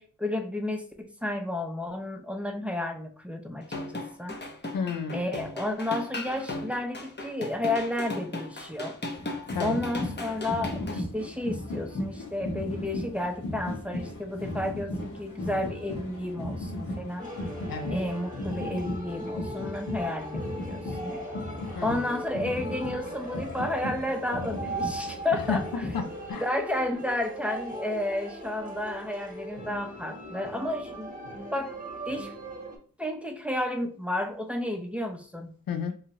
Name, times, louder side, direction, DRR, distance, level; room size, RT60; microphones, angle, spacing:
voice 1, 0.0-3.7 3.9-4.4 5.1-8.9 9.6-17.3 17.9-21.2 21.8-25.9 26.4-31.1 31.5-31.7 32.1-32.3 33.0-35.5, left 1 dB, 5° right, 3 dB, 0.6 m, -32 dB
sound 1, 3.6-11.0, left 2 dB, 30° left, 0.8 m, -37 dB
voice 2, 4.7-5.3 9.5-9.8 17.7-17.9 21.8-22.0 25.5-25.6 25.9-26.4 35.7-35.9, left 6 dB, 85° left, 6 dB, 0.6 m, -31 dB
sound 2, 9.1-26.3, left 1 dB, 65° left, 1.4 m, -36 dB
sound 3, 17.2-32.8, right 1 dB, 25° right, 1.1 m, -39 dB
3.1 x 2.3 x 2.9 m, 0.44 s
cardioid pair, 50°, 33 cm